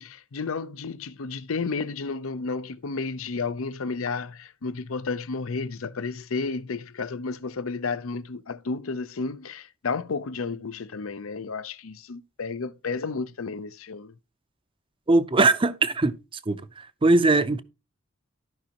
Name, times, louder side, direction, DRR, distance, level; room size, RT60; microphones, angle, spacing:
voice 1, 0.0-14.1, left 4 dB, 80° left, 0.6 m, -32 dB
voice 2, 15.1-16.1 16.5-17.6, right 2 dB, 25° right, 0.5 m, -21 dB
14.0 x 5.3 x 2.9 m
head